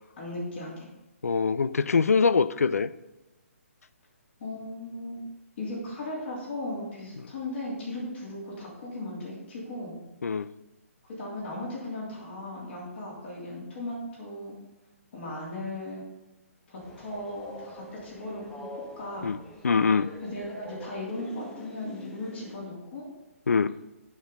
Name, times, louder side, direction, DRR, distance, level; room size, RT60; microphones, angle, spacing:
voice 1, 0.2-0.9 4.4-5.2 5.6-9.9 11.2-14.5 15.1-16.0 16.7-19.3 20.2-23.1, left 1 dB, 50° left, -5 dB, 3.2 m, -37 dB
voice 2, 1.2-2.9 10.2-10.5 19.2-19.4 19.6-20.1 23.5-23.7, left 5 dB, 80° left, 16 dB, 0.4 m, -23 dB
Train, 16.8-22.6, equal, 10° left, 0.7 m, -45 dB
10.5 x 5.2 x 3.9 m, 1.0 s
hypercardioid pair, 140°, 8 cm